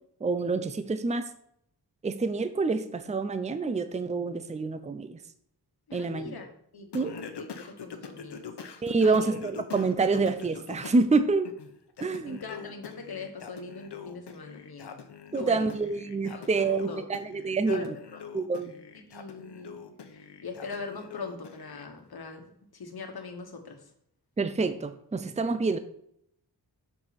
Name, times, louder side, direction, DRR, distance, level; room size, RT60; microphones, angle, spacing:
voice 1, 0.2-1.2 2.0-5.2 5.9-6.3 6.9-7.1 8.8-11.5 12.0-12.4 15.3-18.0 18.3-18.7 24.4-25.8, right 3 dB, 15° right, 11 dB, 0.5 m, -27 dB
voice 2, 5.9-6.5 6.7-8.5 9.0-9.3 12.2-15.0 15.4-15.7 16.3-17.0 17.6-18.2 19.0-19.8 20.1-23.9, left 4 dB, 65° left, 4 dB, 1.4 m, -41 dB
Singing, 6.9-11.1 11.4-21.8, left 6 dB, 80° left, 1.0 m, -44 dB
7.3 x 6.8 x 4.2 m, 0.70 s
wide cardioid pair, 125°, 41 cm